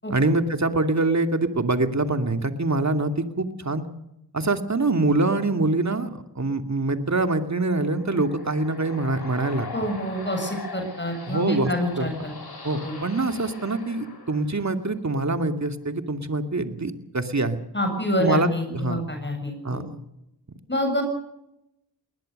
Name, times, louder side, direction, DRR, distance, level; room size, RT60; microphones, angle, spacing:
voice 1, 0.1-3.8 4.3-6.1 6.3-9.7 11.3-11.7 12.0-17.6 18.2-19.0 19.6-20.0, right 2 dB, 40° right, 7 dB, 2.6 m, -24 dB
sound 1, 7.5-15.0, left 4 dB, 60° left, 5.2 m, -41 dB
voice 2, 9.7-12.3 12.8-13.0 17.7-19.8 20.7-21.0, left 1 dB, 25° left, 5 dB, 7.6 m, -27 dB
21.5 x 19.5 x 6.7 m, 0.84 s
cardioid pair, 50°, 42 cm